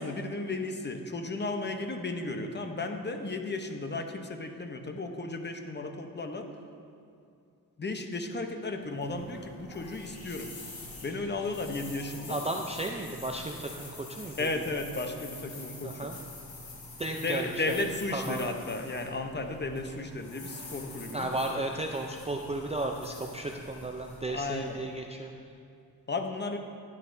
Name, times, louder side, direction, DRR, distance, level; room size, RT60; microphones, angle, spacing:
voice 1, 0.0-6.5 7.8-10.5 11.0-12.4 14.4-16.1 17.2-21.4 24.3-24.8 26.1-26.6, left 2 dB, 25° left, 5 dB, 0.8 m, -34 dB
sound 1, 8.8-25.0, left 2 dB, 85° left, 1.8 m, -46 dB
voice 2, 12.3-14.5 15.8-16.2 17.0-18.5 21.1-25.3, right 2 dB, 15° right, 2 dB, 0.4 m, -34 dB
10.5 x 9.2 x 2.7 m, 2.5 s
cardioid pair, 85°, 41 cm